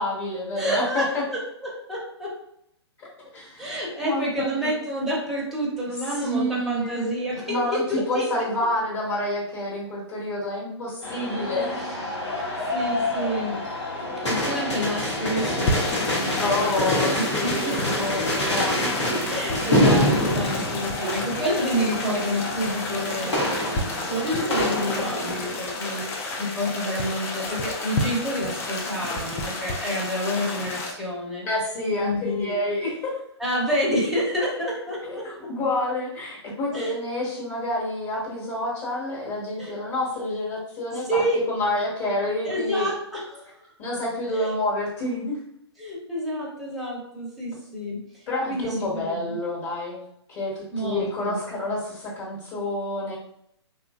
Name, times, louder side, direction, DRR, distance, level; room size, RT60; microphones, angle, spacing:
voice 1, 0.0-1.2 3.0-3.1 3.3-3.7 4.0-4.8 6.2-7.1 7.4-11.8 16.4-19.2 21.0-21.3 31.4-33.2 35.0-42.9 43.8-45.4 48.3-50.0 50.3-53.2, left 1 dB, 40° left, -6 dB, 1.1 m, -28 dB
voice 2, 0.6-2.3 3.6-8.2 12.1-12.4 12.7-13.6 14.3-18.1 19.3-26.1 26.4-31.4 32.0-32.5 33.4-35.2 36.7-37.0 39.6-39.7 40.9-41.4 42.4-43.7 44.3-44.6 45.8-49.4 50.7-51.4, equal, ahead, -6 dB, 0.7 m, -29 dB
sound 1, 11.0-25.5, left 1 dB, 85° left, 1.1 m, -26 dB
sound 2, 15.6-30.9, left 2 dB, 15° left, 0.3 m, -31 dB
2.7 x 2.5 x 2.4 m, 0.74 s
hypercardioid pair, 125°, 15 cm